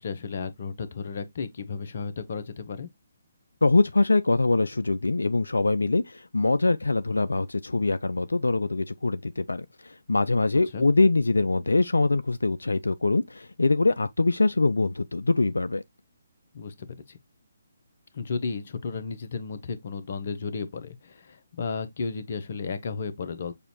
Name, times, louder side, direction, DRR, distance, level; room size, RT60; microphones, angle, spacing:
voice 1, 0.0-2.9 10.7-10.9 16.5-17.2 18.1-23.5, left 5 dB, 50° left, 0.9 m, -33 dB
voice 2, 3.6-15.8, left 3 dB, 80° left, 0.3 m, -23 dB
6.7 x 2.6 x 2.9 m
figure-of-eight pair, 140°, 0 cm